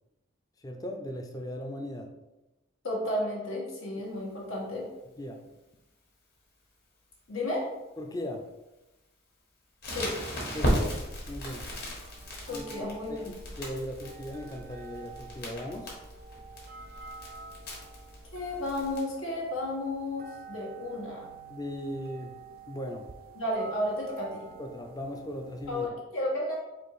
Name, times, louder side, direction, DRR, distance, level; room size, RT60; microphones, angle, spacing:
voice 1, 0.6-2.1 5.2-5.4 8.0-8.4 10.5-11.0 11.3-11.6 12.5-15.9 21.5-22.3 22.7-23.1 24.6-25.9, equal, 20° left, 3 dB, 0.4 m, -38 dB
voice 2, 2.8-4.9 7.3-7.7 9.9-10.2 12.5-13.3 18.3-21.2 23.3-24.5 25.7-26.6, left 1 dB, 90° left, -3 dB, 1.4 m, -32 dB
Crackle, 9.8-19.0, equal, 50° left, 1.4 m, -36 dB
sound 1, 9.9-25.9, right 4 dB, 45° right, 0.4 m, -49 dB
4.3 x 2.7 x 4.7 m, 1.0 s
head